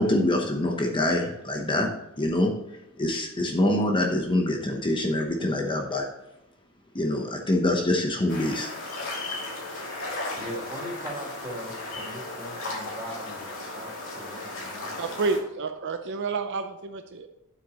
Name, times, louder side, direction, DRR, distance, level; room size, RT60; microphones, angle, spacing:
voice 1, 0.0-1.9 2.2-2.5 3.0-6.0 6.9-8.7, left 1 dB, 20° left, 1 dB, 0.9 m, -25 dB
sound 1, 8.3-15.4, left 2 dB, 65° left, 2.7 m, -35 dB
voice 2, 10.3-15.3, equal, 15° right, -4 dB, 3.0 m, -40 dB
voice 3, 15.0-17.3, right 4 dB, 55° right, 6 dB, 0.6 m, -29 dB
9.6 x 7.7 x 3.0 m, 0.90 s
head